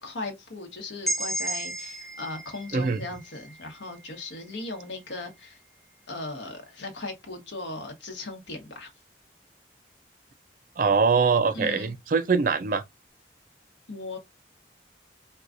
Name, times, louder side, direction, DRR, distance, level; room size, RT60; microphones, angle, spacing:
voice 1, 0.0-5.6 6.1-8.9 11.5-11.9 13.9-14.2, left 2 dB, 85° left, 1.0 m, -37 dB
sound 1, 1.1-4.9, right 1 dB, ahead, 0.6 m, -34 dB
voice 2, 10.8-12.8, right 5 dB, 45° right, 0.4 m, -23 dB
4.4 x 2.3 x 2.4 m
head